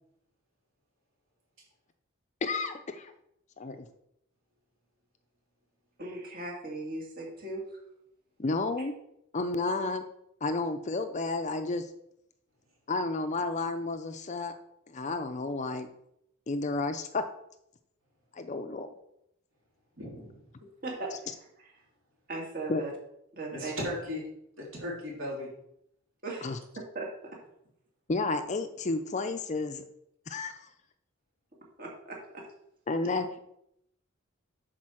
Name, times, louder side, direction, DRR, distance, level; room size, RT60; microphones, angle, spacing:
voice 1, 2.4-3.1 3.6-3.9 8.4-8.9 9.3-10.0 10.4-11.9 12.9-14.5 14.9-15.9 16.5-17.2 18.3-18.9 22.7-22.8 26.4-26.6 28.1-29.8 30.3-30.7 32.9-33.4, left 3 dB, 35° left, 9 dB, 0.5 m, -31 dB
voice 2, 6.0-7.8 20.8-21.2 22.3-22.9 23.3-23.7 26.2-26.5 26.9-27.4 31.8-32.4, right 2 dB, 45° right, -2 dB, 2.0 m, -38 dB
voice 3, 20.0-20.4 23.5-24.2 24.6-25.5, left 1 dB, 65° right, -4 dB, 3.5 m, -36 dB
8.6 x 4.4 x 6.2 m, 0.77 s
head